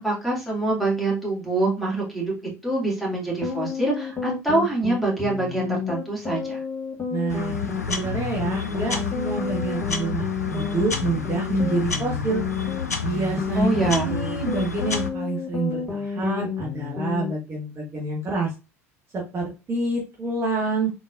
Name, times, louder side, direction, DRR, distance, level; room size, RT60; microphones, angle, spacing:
voice 1, 0.0-2.3 2.6-6.6 13.5-14.1, right 2 dB, ahead, -5 dB, 2.0 m, -25 dB
sound 1, 3.4-17.3, left 5 dB, 20° left, 1.8 m, -31 dB
voice 2, 7.1-7.5 7.9-12.4 13.0-18.5 19.1-20.9, right 3 dB, 30° right, -2 dB, 1.2 m, -27 dB
sound 2, 7.3-15.1, left 6 dB, 85° left, 0.5 m, -30 dB
3.8 x 3.8 x 2.4 m, 0.28 s
figure-of-eight pair, 70°, 8 cm